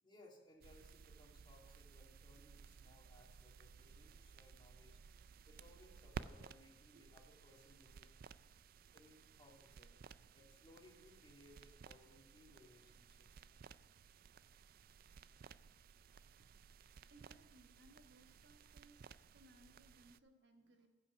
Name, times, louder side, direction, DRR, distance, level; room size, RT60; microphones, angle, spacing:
voice 1, 0.0-5.0 5.5-8.1 8.9-9.9 10.3-13.4, left 1 dB, 25° left, -2 dB, 2.5 m, -65 dB
sound 1, 0.6-20.2, right 5 dB, 50° right, 0.3 m, -57 dB
voice 2, 17.1-19.1 19.3-20.9, right 2 dB, 70° right, 4 dB, 1.4 m, -66 dB
15.5 x 5.9 x 6.0 m, 1.3 s
head